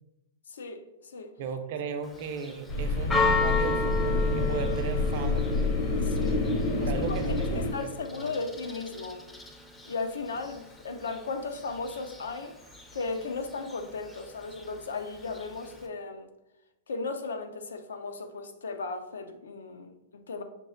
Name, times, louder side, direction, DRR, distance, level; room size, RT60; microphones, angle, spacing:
voice 1, 0.5-1.4 6.0-6.4 7.1-9.3 9.9-12.5 12.9-16.3 16.9-20.4, left 3 dB, 90° left, 0.4 m, -36 dB
voice 2, 1.4-4.1 4.3-5.5 6.7-8.3, right 5 dB, 55° right, 0.5 m, -36 dB
Church bell, 2.0-15.9, left 3 dB, 10° left, 0.4 m, -35 dB
sound 1, 2.7-7.7, left 2 dB, 50° left, 0.6 m, -27 dB
5.9 x 2.0 x 2.5 m
hypercardioid pair, 130°, 0 cm